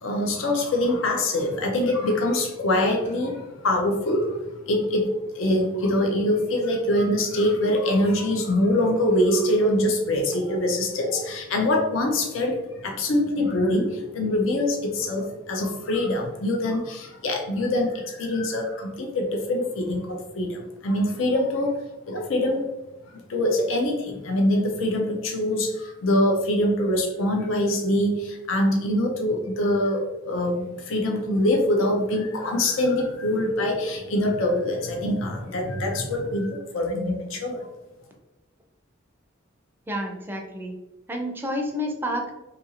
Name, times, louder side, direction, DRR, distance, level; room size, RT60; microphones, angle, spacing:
voice 1, 0.0-4.4 4.7-12.6 12.8-21.8 22.1-22.7 23.3-37.6, left 1 dB, 80° left, 1 dB, 0.5 m, -24 dB
voice 2, 39.9-40.7 41.1-42.3, equal, 10° right, 2 dB, 0.4 m, -29 dB
2.7 x 2.5 x 2.7 m, 1.0 s
head